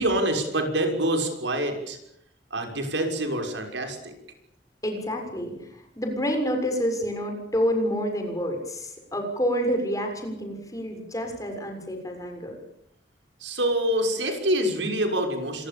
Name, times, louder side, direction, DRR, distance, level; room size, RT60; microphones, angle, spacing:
voice 1, 0.0-2.0 2.5-4.1 13.4-15.7, right 1 dB, 85° right, 4 dB, 6.1 m, -26 dB
voice 2, 4.8-12.6, equal, 20° left, 4 dB, 6.8 m, -28 dB
27.0 x 23.5 x 7.1 m, 0.74 s
head